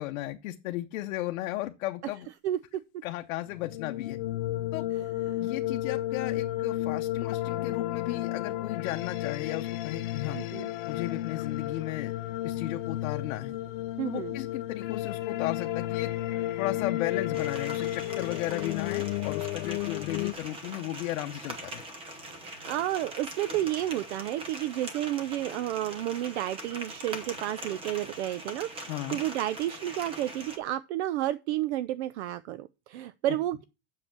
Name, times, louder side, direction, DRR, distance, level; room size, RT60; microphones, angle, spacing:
voice 1, 0.0-2.3 3.0-4.2 4.7-4.9 5.4-10.4 10.9-12.1 12.4-13.5 14.1-16.1 16.6-21.8 28.9-29.2 33.3-33.4, left 15 dB, 70° left, 0.8 m, -35 dB
voice 2, 2.4-3.0 10.3-10.7 14.0-14.3 22.7-33.6, right 13 dB, 55° right, 0.5 m, -31 dB
sound 1, 3.5-20.3, left 14 dB, 40° left, 0.5 m, -32 dB
sound 2, 17.3-30.6, right 1 dB, 15° right, 0.8 m, -42 dB
7.7 x 6.5 x 5.9 m
supercardioid pair, 175°, 41 cm